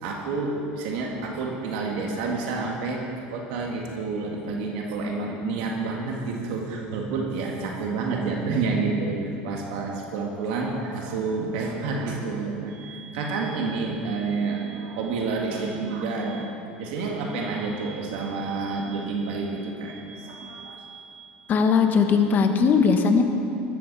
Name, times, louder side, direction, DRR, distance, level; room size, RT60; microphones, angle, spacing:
voice 1, 0.0-3.0 3.3-16.5 16.8-21.5, right 4 dB, 80° right, 0 dB, 1.9 m, -29 dB
voice 2, 21.5-23.2, left 5 dB, 40° left, 5 dB, 1.3 m, -19 dB
14.0 x 14.0 x 4.2 m, 2.6 s
supercardioid pair, 115°, 5 cm